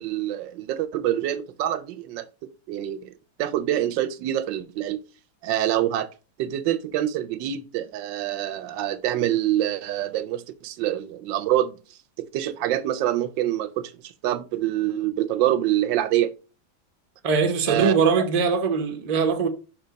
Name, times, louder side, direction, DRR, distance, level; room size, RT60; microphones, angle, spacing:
voice 1, 0.0-2.3 2.7-3.1 3.4-5.0 5.4-6.1 6.4-16.3 17.7-18.3, right 12 dB, 75° right, 1.2 m, -26 dB
voice 2, 17.2-19.5, right 5 dB, 40° right, 0.5 m, -21 dB
5.4 x 4.4 x 5.1 m
omnidirectional pair, 2.1 m